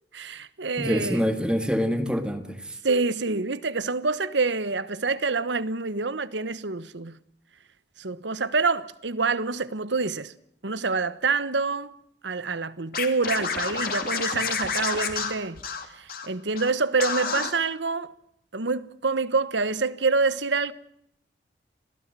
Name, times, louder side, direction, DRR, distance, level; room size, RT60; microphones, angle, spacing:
voice 1, 0.1-1.2 2.8-7.2 8.0-10.3 10.6-11.9 12.2-15.6 15.9-18.1 18.5-20.7, right 4 dB, 80° right, 1.2 m, -26 dB
voice 2, 0.8-2.8, equal, 5° right, 1.8 m, -26 dB
Scratching (performance technique), 12.9-16.3 16.5-16.7 17.0-17.5, left 5 dB, 55° left, 2.9 m, -29 dB
27.0 x 17.0 x 7.5 m
head